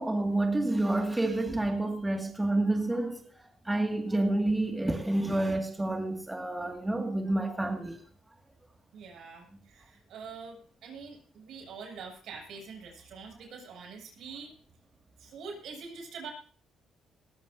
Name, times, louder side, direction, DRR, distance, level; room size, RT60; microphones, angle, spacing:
voice 1, 0.0-3.3 3.6-8.0, right 2 dB, 15° right, 2.3 m, -29 dB
voice 2, 8.9-14.5 15.2-16.3, right 5 dB, 75° right, 7.2 m, -45 dB
20.0 x 16.0 x 2.8 m
cardioid pair, 90°, 0 cm